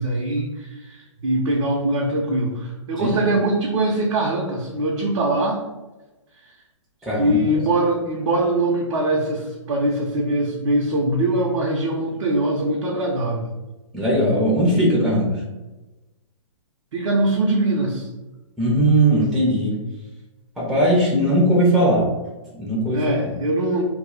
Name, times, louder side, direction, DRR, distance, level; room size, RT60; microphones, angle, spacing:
voice 1, 0.0-5.6 6.5-6.6 7.2-13.5 16.9-18.1 22.9-23.8, right 1 dB, 60° right, -2 dB, 0.5 m, -22 dB
voice 2, 7.0-7.4 13.9-15.4 18.6-19.8 20.6-22.1 22.5-23.3, right 1 dB, ahead, -6 dB, 0.4 m, -19 dB
2.1 x 2.0 x 3.7 m, 1.1 s
hypercardioid pair, 130°, 16 cm